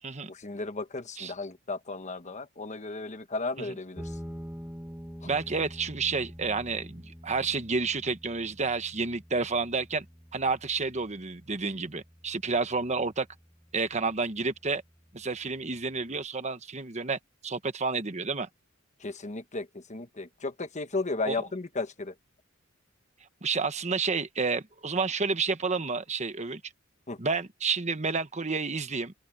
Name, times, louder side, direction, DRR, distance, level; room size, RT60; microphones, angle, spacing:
voice 1, 0.3-4.0 19.0-22.1 27.1-27.2, left 3 dB, 35° left, 1.2 m, -34 dB
sound 1, 4.0-13.0, equal, 10° right, 7.6 m, -45 dB
voice 2, 5.2-10.0 10.3-13.3 13.7-14.8 15.1-18.5 21.3-21.5 23.4-26.6 27.2-29.1, right 4 dB, 35° right, 1.3 m, -30 dB
open air
head